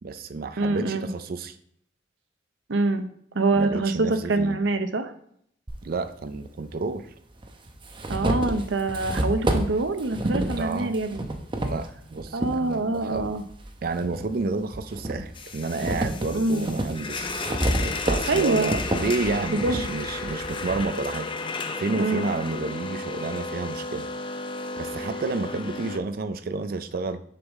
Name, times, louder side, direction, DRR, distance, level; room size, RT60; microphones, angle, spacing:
voice 1, 0.0-1.6 3.5-4.6 5.8-7.1 10.6-10.9 11.6-13.3 13.8-21.3 21.8-24.1 24.8-27.2, right 3 dB, 50° right, 10 dB, 0.4 m, -30 dB
voice 2, 0.6-1.1 2.7-3.1 3.3-5.1 8.1-11.2 12.3-13.4 16.3-16.7 18.3-18.7 19.5-19.9 21.9-22.3, right 2 dB, 80° right, 8 dB, 0.7 m, -25 dB
sound 1, 5.7-5.8 6.8-6.9 7.4-12.6 13.1-14.3 14.7-20.9, right 1 dB, 25° right, 0.7 m, -29 dB
sound 2, 15.4-26.0, left 3 dB, 25° left, 0.5 m, -33 dB
6.7 x 5.4 x 3.6 m, 0.68 s
head